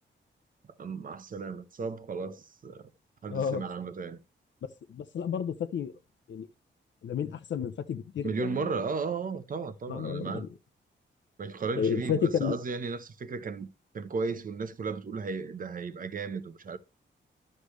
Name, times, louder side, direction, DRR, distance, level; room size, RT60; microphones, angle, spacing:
voice 1, 0.8-2.9 3.2-4.2 8.2-10.4 11.4-13.7 13.9-16.8, right 4 dB, 45° right, 0.9 m, -35 dB
voice 2, 3.3-3.6 4.9-5.9 6.3-6.5 7.0-8.7 9.9-10.5 11.8-12.5, left 7 dB, 70° left, 0.7 m, -31 dB
11.5 x 6.6 x 3.1 m
wide cardioid pair, 145°, 20 cm